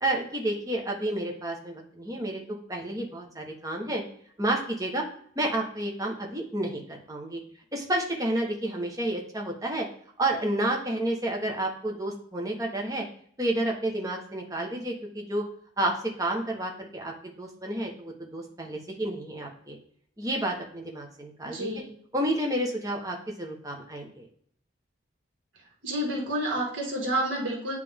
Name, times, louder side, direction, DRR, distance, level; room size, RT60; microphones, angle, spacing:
voice 1, 0.0-4.0 4.4-5.0 5.4-7.4 7.7-9.8 10.2-13.0 13.4-15.4 15.8-19.8 20.2-21.7 22.1-24.3, right 1 dB, 15° right, 1 dB, 1.0 m, -30 dB
voice 2, 21.4-21.9 25.8-27.8, right 1 dB, 80° right, -2 dB, 2.0 m, -29 dB
9.1 x 3.3 x 3.6 m, 0.62 s
head